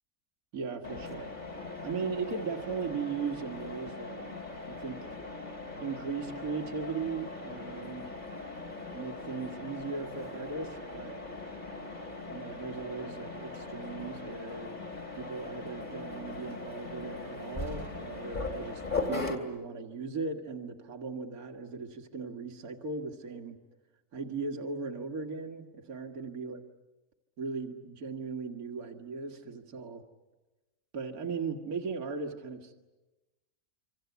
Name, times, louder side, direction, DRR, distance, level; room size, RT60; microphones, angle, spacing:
voice 1, 0.5-1.3 1.8-4.2 4.7-5.1 5.8-8.1 8.9-11.2 12.3-14.8 15.1-23.6 24.1-26.6 27.4-30.0 30.9-32.8, right 5 dB, 70° right, 4 dB, 2.2 m, -38 dB
Mechanisms, 0.8-19.4, left 3 dB, 30° left, 3.3 m, -40 dB
26.5 x 26.0 x 8.1 m, 1.1 s
omnidirectional pair, 1.6 m